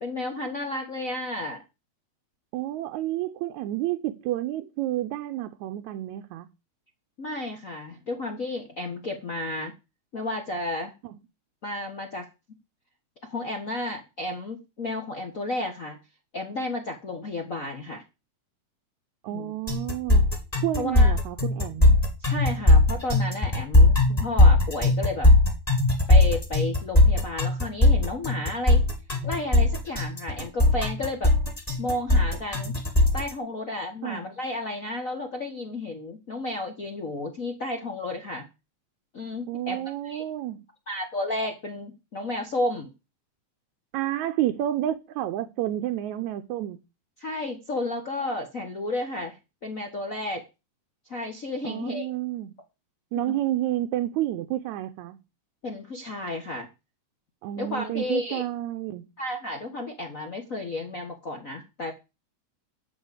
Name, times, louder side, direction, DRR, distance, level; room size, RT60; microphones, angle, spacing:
voice 1, 0.0-1.6 7.2-9.7 10.1-10.9 11.6-12.3 13.3-16.0 16.3-18.0 19.3-19.5 20.8-21.1 22.2-25.3 26.1-28.8 29.2-31.3 31.8-32.7 33.1-38.4 39.1-40.2 40.9-42.9 47.2-50.4 51.1-52.1 53.3-53.4 55.6-56.7 57.6-58.4 59.2-61.9, left 2 dB, 40° left, 1.2 m, -32 dB
voice 2, 2.5-6.5 19.2-20.3 20.6-22.0 34.0-34.2 39.5-40.6 43.9-46.8 51.6-52.5 53.1-55.2 57.4-59.1, right 13 dB, 80° right, 2.1 m, -30 dB
sound 1, 19.7-33.3, left 2 dB, 15° left, 2.3 m, -19 dB
12.0 x 4.8 x 8.2 m
omnidirectional pair, 3.3 m